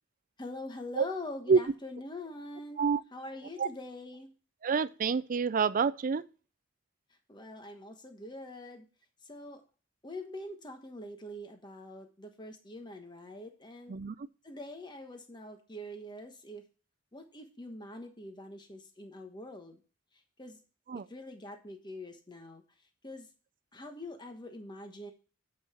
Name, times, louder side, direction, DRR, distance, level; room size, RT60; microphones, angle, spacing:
voice 1, 0.4-2.8 3.1-4.3 7.3-8.8 9.2-9.6 10.0-14.0 14.4-16.6 17.1-19.8 20.4-20.6 21.1-22.6 23.0-23.3 23.7-25.1, left 1 dB, 25° left, 1.3 m, -44 dB
voice 2, 4.6-6.2 13.9-14.3 20.9-21.1, right 5 dB, 45° right, 0.4 m, -27 dB
8.8 x 5.5 x 5.7 m
head